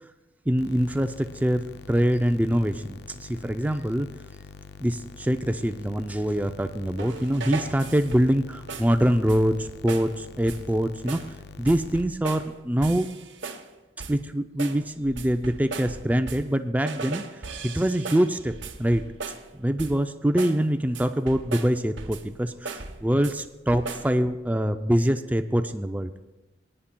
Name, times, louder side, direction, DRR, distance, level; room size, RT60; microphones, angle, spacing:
voice 1, 0.5-4.1 4.8-11.2 11.6-13.1 14.1-17.2 17.6-19.0 19.6-26.1, equal, 10° right, 9 dB, 0.3 m, -24 dB
sound 1, 0.6-12.0, left 4 dB, 60° left, 0.4 m, -45 dB
sound 2, 7.0-8.4 8.7-9.0 9.3-9.6 9.9-10.2 10.5-10.7 11.1-11.4 11.7-12.5 12.8-13.7 14.0-14.3 14.6-16.6 16.9-19.5 19.8-20.1 20.4-20.6 20.9-22.3 22.7-23.4 23.7-24.2, right 4 dB, 85° right, 0.9 m, -38 dB
21.5 x 9.8 x 2.2 m, 1.1 s
head